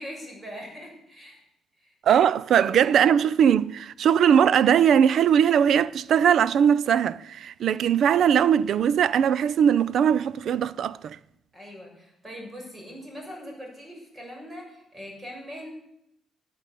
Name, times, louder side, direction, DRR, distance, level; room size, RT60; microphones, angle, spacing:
voice 1, 0.0-1.4 1.8-2.3 2.5-2.7 11.5-15.7, equal, 25° right, 6.8 m, -41 dB
voice 2, 2.1-11.2, right 8 dB, 65° right, 0.5 m, -20 dB
14.0 x 9.0 x 8.4 m
cardioid pair, 90°, 0 cm